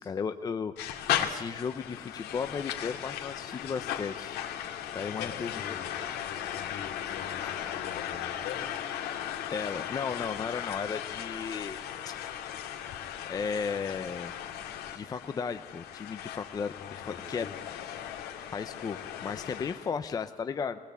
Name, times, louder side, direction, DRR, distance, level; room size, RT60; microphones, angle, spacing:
voice 1, 0.0-4.5 4.9-5.8 9.5-11.8 12.0-12.1 13.3-14.3 14.9-17.5 17.7-17.8 18.5-20.8, left 6 dB, 25° left, 9 dB, 0.6 m, -35 dB
sound 1, 0.8-19.9, left 10 dB, 90° left, 2.3 m, -37 dB
voice 2, 5.0-8.7 16.8-17.6, left 8 dB, 70° left, 4 dB, 3.5 m, -44 dB
23.0 x 19.5 x 8.3 m, 1.5 s
cardioid pair, 170°, 16 cm